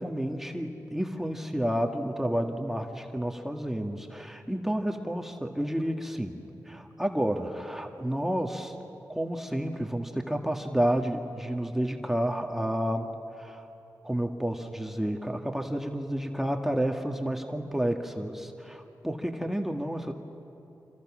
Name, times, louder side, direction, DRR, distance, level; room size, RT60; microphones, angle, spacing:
voice 1, 0.0-8.7 9.1-13.1 13.4-13.6 14.0-20.1, right 1 dB, 5° right, 3 dB, 1.7 m, -30 dB
27.5 x 26.0 x 6.2 m, 2.9 s
cardioid pair, 70°, 7 cm